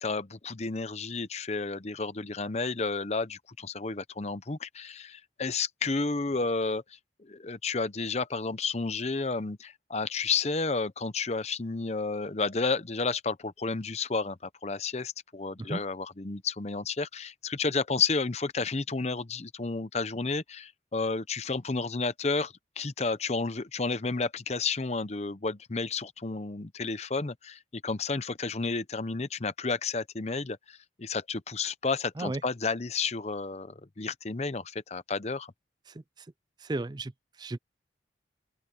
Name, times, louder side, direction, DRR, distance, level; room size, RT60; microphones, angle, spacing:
voice 1, 0.0-35.5, left 4 dB, 35° left, 0.7 m, -31 dB
voice 2, 35.9-36.3 36.6-37.6, right 2 dB, 20° right, 0.4 m, -35 dB
open air
head